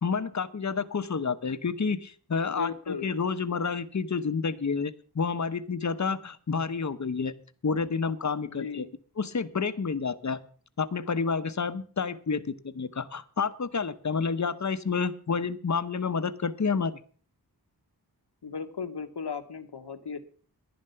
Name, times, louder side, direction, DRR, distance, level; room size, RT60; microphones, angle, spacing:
voice 1, 0.0-7.3 7.6-8.8 9.2-10.4 10.8-17.0, left 5 dB, 45° left, 13 dB, 0.8 m, -29 dB
voice 2, 2.4-3.1 8.5-8.9 18.4-20.2, left 5 dB, 90° left, 8 dB, 1.2 m, -36 dB
11.0 x 10.5 x 5.6 m, 0.43 s
wide cardioid pair, 60°, 39 cm